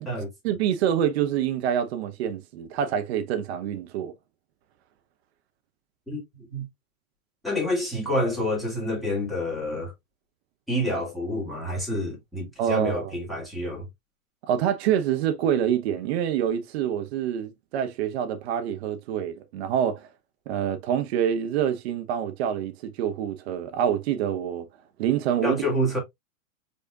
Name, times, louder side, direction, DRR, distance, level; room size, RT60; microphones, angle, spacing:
voice 1, 0.4-4.1 12.6-13.2 14.4-20.1 20.5-24.7 25.0-25.6, right 9 dB, 45° right, 1.0 m, -26 dB
voice 2, 7.4-9.9 10.7-13.9 25.4-26.0, left 1 dB, ahead, 2.6 m, -28 dB
5.3 x 4.1 x 2.4 m
figure-of-eight pair, 105°, 42 cm